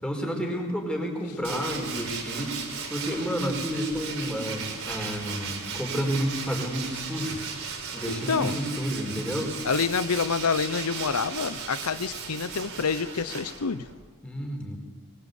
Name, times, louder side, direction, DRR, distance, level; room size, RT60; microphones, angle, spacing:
voice 1, 0.0-2.5 2.9-7.4 7.9-9.5 14.2-14.8, equal, 5° left, 1 dB, 5.0 m, -30 dB
Tools, 1.4-13.9, right 5 dB, 65° right, 5.0 m, -36 dB
voice 2, 9.6-13.8, left 5 dB, 90° left, 13 dB, 0.8 m, -27 dB
23.5 x 23.5 x 8.4 m, 1.4 s
head